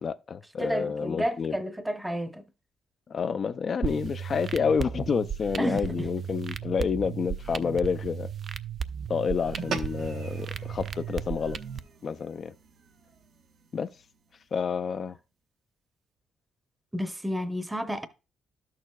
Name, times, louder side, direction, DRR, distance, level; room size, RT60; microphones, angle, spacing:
voice 1, 0.0-1.6 3.1-8.3 9.1-11.6 12.0-12.5 13.7-13.9 14.5-15.2, left 6 dB, 50° left, 0.3 m, -29 dB
voice 2, 0.6-2.4 5.6-5.8 16.9-18.1, equal, 10° right, 0.7 m, -30 dB
sound 1, 3.8-11.8, right 8 dB, 50° right, 0.4 m, -35 dB
sound 2, 9.6-14.2, right 5 dB, 70° right, 0.8 m, -41 dB
12.0 x 6.5 x 2.3 m
cardioid pair, 90°, 0 cm